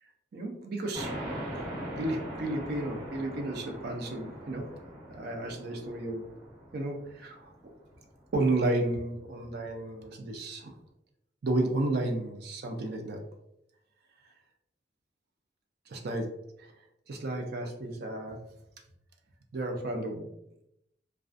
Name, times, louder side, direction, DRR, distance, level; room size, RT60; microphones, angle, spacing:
voice 1, 0.3-1.1 1.5-1.6 2.0-4.7 5.1-6.3 6.7-7.5 8.3-10.7 11.4-13.2 15.9-16.3 16.6-16.7 17.1-18.4 19.5-20.3, right 2 dB, 60° right, 3 dB, 0.4 m, -32 dB
sound 1, 0.9-8.1, equal, 30° right, 1.5 m, -41 dB
2.4 x 2.3 x 2.4 m, 0.81 s
head